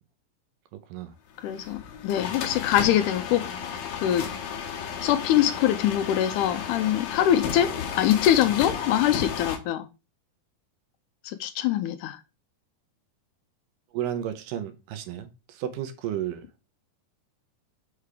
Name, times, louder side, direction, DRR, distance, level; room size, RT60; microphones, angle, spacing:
voice 1, 1.4-3.5 3.9-4.3 5.0-9.9 11.2-12.2, left 11 dB, 80° left, 1.9 m, -23 dB
sound 1, 1.4-9.6, left 7 dB, 65° left, 1.9 m, -33 dB
voice 2, 13.9-16.4, right 10 dB, 75° right, 2.3 m, -33 dB
6.6 x 3.5 x 4.9 m
omnidirectional pair, 4.1 m